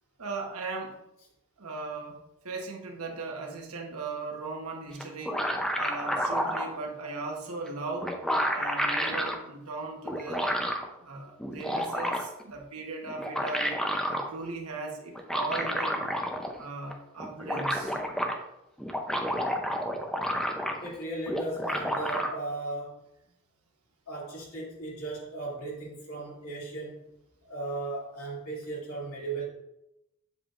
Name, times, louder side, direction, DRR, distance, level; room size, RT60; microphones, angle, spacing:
voice 1, 0.2-1.0 1.6-2.2 2.4-5.5 5.7-8.1 8.5-10.6 11.0-13.8 14.1-16.1 16.6-18.0, right 3 dB, 75° right, 1 dB, 1.2 m, -38 dB
sound 1, 5.0-6.7 7.7-7.8 8.0-9.4 10.1-10.9 11.4-12.4 13.1-14.3 15.2-16.6 16.9-17.0 17.2-18.4 18.8-21.0 21.3-22.3, equal, 5° left, 0.5 m, -30 dB
voice 2, 20.8-23.0 24.1-27.1 27.4-29.5, right 2 dB, 65° left, -4 dB, 2.5 m, -36 dB
7.7 x 7.0 x 2.5 m, 0.89 s
head